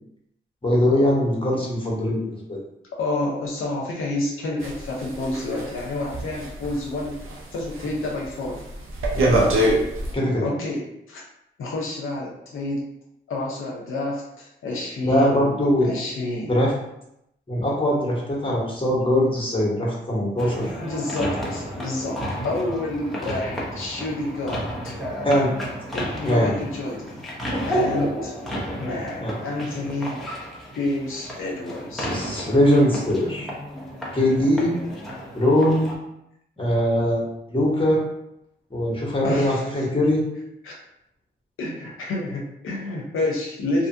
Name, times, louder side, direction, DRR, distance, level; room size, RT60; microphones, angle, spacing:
voice 1, 0.6-2.6 9.1-9.4 10.1-10.5 15.0-15.9 16.5-16.7 17.5-20.7 25.2-25.5 26.2-26.5 29.2-29.3 32.0-33.5 34.1-34.7 35.3-35.9 36.6-38.0 38.7-40.2, left 1 dB, 25° left, -3 dB, 1.1 m, -21 dB
voice 2, 2.9-7.2 7.5-8.6 10.4-11.2 11.6-12.8 13.3-15.5 15.8-16.6 20.8-24.7 25.9-27.2 27.6-28.4 28.8-30.2 30.7-32.1 39.2-39.9 40.6-40.7 41.6-43.9, left 2 dB, 80° left, -3 dB, 0.6 m, -29 dB
sound 1, 4.6-7.4 7.7-8.1 8.4-10.1, right 1 dB, 90° right, 0.6 m, -24 dB
sound 2, 20.4-36.0, equal, ahead, 0.9 m, -32 dB
2.6 x 2.4 x 2.6 m, 0.81 s
cardioid pair, 50°, 21 cm